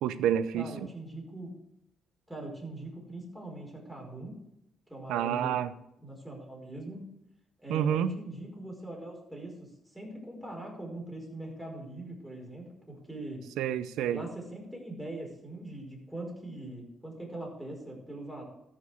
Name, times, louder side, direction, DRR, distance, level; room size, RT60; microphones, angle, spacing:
voice 1, 0.0-0.9 5.1-5.7 7.7-8.2 13.6-14.2, right 9 dB, 90° right, 14 dB, 0.6 m, -29 dB
voice 2, 0.5-1.5 2.3-4.4 4.9-5.6 6.0-7.0 7.6-13.5 14.1-18.4, right 1 dB, 5° right, -1 dB, 5.0 m, -42 dB
14.0 x 6.0 x 6.4 m, 0.85 s
cardioid pair, 90°, 0 cm